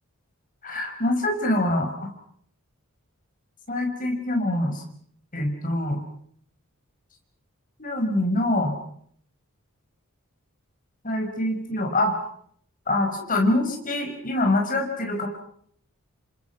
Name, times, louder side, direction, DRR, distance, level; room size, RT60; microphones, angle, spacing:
voice 1, 0.6-2.1 3.7-4.8 5.3-6.0 7.8-8.7 11.0-12.2 12.9-15.3, left 1 dB, 40° left, 3 dB, 5.8 m, -24 dB
29.5 x 25.0 x 6.0 m, 0.64 s
head